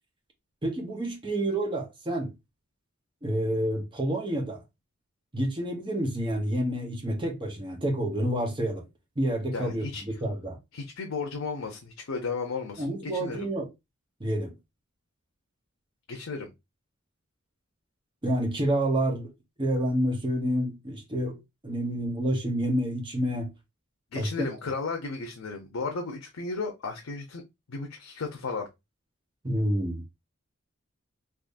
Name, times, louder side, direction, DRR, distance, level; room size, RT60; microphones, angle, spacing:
voice 1, 0.6-2.3 3.2-4.6 5.3-8.8 9.2-10.6 12.8-13.7 14.2-14.5 18.2-19.3 19.6-21.4 21.6-23.5 24.1-24.5 29.4-30.0, right 1 dB, 25° right, 0.9 m, -28 dB
voice 2, 9.5-10.0 10.7-13.5 16.1-16.5 24.1-27.4 27.7-28.7, left 4 dB, 85° left, 0.7 m, -34 dB
3.6 x 2.9 x 2.6 m
head